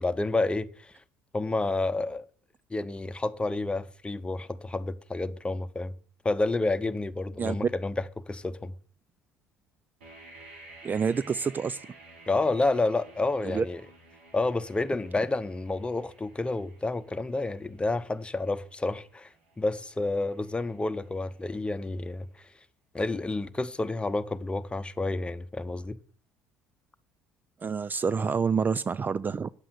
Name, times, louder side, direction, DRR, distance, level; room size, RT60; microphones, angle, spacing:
voice 1, 0.0-0.9 1.3-2.2 2.7-5.9 6.2-8.7 12.3-13.8 14.3-22.5 22.9-26.0, left 2 dB, 15° left, 1.0 m, -30 dB
sound 1, 10.0-21.8, right 2 dB, 85° right, 2.1 m, -54 dB
voice 2, 10.8-11.8 13.4-13.6 27.6-29.5, right 5 dB, 30° right, 0.4 m, -28 dB
9.9 x 7.6 x 6.4 m
hypercardioid pair, 60°, 6 cm